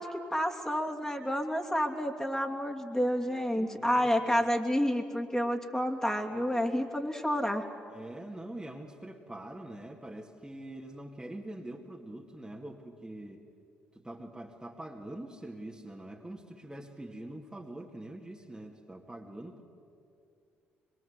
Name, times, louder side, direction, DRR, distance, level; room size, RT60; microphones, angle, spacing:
voice 1, 0.0-7.6, equal, 10° left, 2 dB, 2.9 m, -30 dB
voice 2, 3.3-4.5 7.9-13.5 13.9-19.6, right 1 dB, 10° right, 0 dB, 2.3 m, -44 dB
24.5 x 23.0 x 8.1 m, 2.5 s
hypercardioid pair, 45°, 6 cm